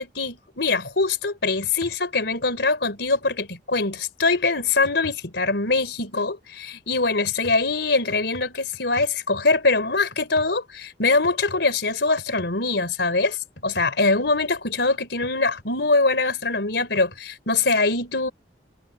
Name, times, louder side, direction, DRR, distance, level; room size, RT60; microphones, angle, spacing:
voice 1, 0.0-13.4 13.6-18.3, left 3 dB, 75° left, 3.5 m, -23 dB
head